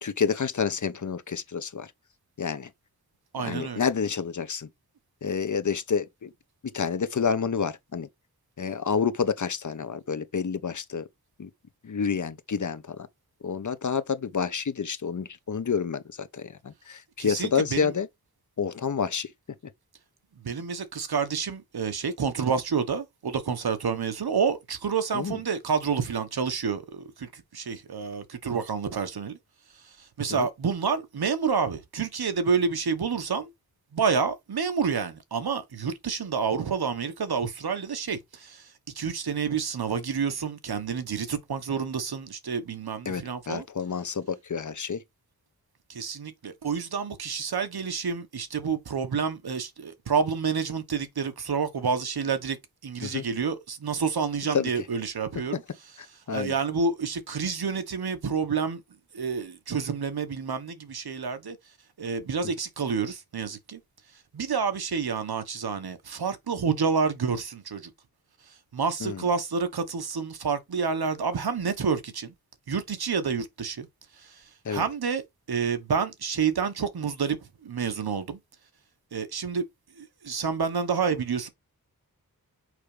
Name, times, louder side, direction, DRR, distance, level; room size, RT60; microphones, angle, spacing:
voice 1, 0.0-1.9 2.4-2.7 3.4-4.7 5.2-6.3 6.7-8.1 8.6-11.1 11.4-11.5 11.8-13.1 13.4-18.1 18.6-19.3 25.1-25.4 30.3-30.5 43.1-45.0 53.0-53.2 54.5-54.7 56.3-56.5 69.0-69.2 74.6-74.8, left 6 dB, 50° left, 1.0 m, -29 dB
voice 2, 3.3-3.8 17.2-17.9 20.4-29.4 29.8-33.5 33.9-43.6 45.9-52.6 52.8-55.6 56.3-58.8 59.1-61.6 62.0-63.8 64.3-67.9 68.5-72.3 72.7-73.9 74.2-75.2 75.5-78.4 79.1-79.6 80.0-81.5, right 6 dB, 80° right, 1.3 m, -29 dB
6.5 x 5.1 x 3.4 m
wide cardioid pair, 65°, 37 cm